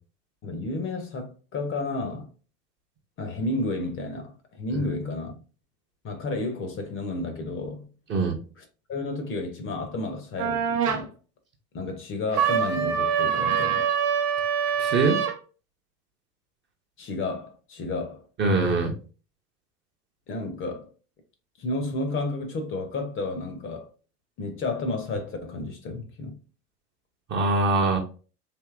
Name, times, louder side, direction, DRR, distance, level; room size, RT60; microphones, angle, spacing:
voice 1, 0.4-2.3 3.2-5.3 6.0-7.9 8.6-11.1 11.7-13.9 17.0-18.2 20.3-20.9 21.6-23.9 24.4-26.4, left 2 dB, 25° left, 0.6 m, -31 dB
sound 1, 10.4-11.0 12.3-15.4, right 7 dB, 80° right, 0.7 m, -24 dB
voice 2, 14.8-15.2 18.4-18.9 27.3-28.0, right 3 dB, 25° right, 0.6 m, -22 dB
3.5 x 2.6 x 2.4 m
hypercardioid pair, 85°, 47 cm